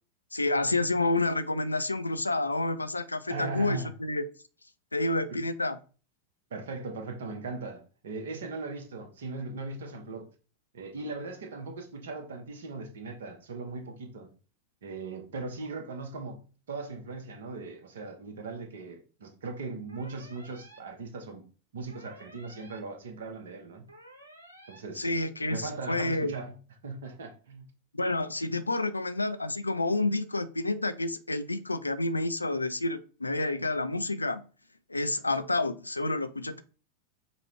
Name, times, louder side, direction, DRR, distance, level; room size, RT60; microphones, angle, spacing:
voice 1, 0.3-4.2 4.9-5.8 25.0-26.4 27.9-34.4 34.9-36.6, left 2 dB, 80° left, 0.4 m, -29 dB
voice 2, 3.3-3.9 5.3-5.4 6.5-10.3 10.7-14.3 14.8-16.4 16.7-21.4 21.7-23.9 24.7-25.1 25.5-26.6 26.8-27.6, right 3 dB, 60° right, 1.0 m, -38 dB
sound 1, 19.9-20.8 21.9-22.8 23.9-24.8, right 1 dB, 85° right, 1.1 m, -52 dB
5.3 x 2.3 x 3.1 m
figure-of-eight pair, 90°, 0 cm